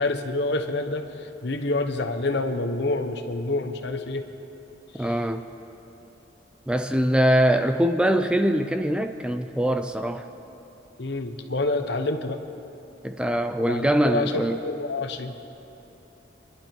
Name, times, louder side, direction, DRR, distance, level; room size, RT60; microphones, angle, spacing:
voice 1, 0.0-4.2 5.0-5.1 11.0-12.4 13.7-15.4, left 2 dB, 65° left, 6 dB, 1.0 m, -27 dB
voice 2, 5.0-5.4 6.7-10.2 13.0-14.6, right 1 dB, 5° right, 7 dB, 0.4 m, -23 dB
26.5 x 11.5 x 4.5 m, 3.0 s
head